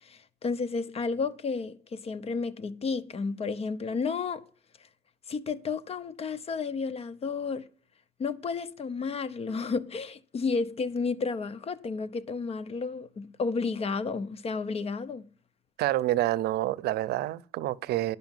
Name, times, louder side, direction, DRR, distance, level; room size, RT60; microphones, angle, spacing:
voice 1, 0.0-4.4 5.3-7.7 8.2-15.3, left 4 dB, 35° left, 0.9 m, -32 dB
voice 2, 15.8-18.2, right 15 dB, 70° right, 0.6 m, -28 dB
11.5 x 5.6 x 7.3 m
cardioid pair, 110°, 17 cm